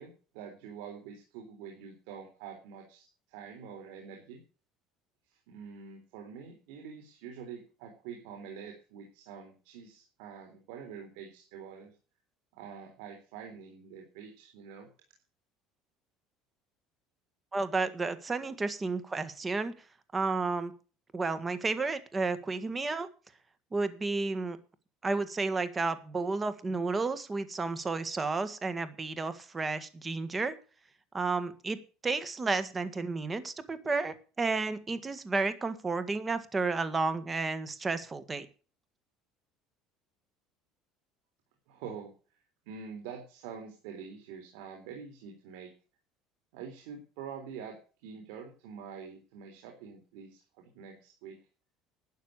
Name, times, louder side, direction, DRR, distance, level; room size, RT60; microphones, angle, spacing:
voice 1, 0.0-4.4 5.5-11.9 12.5-14.9 41.7-42.1 42.7-45.7 46.5-47.8 48.0-51.4, right 7 dB, 85° right, 3 dB, 3.7 m, -46 dB
voice 2, 17.5-19.7 20.1-20.7 21.1-23.1 23.7-24.6 25.0-30.5 31.1-31.8 32.0-38.5, right 3 dB, 20° right, 13 dB, 1.7 m, -32 dB
12.5 x 9.1 x 6.6 m, 0.37 s
cardioid pair, 120°, 0 cm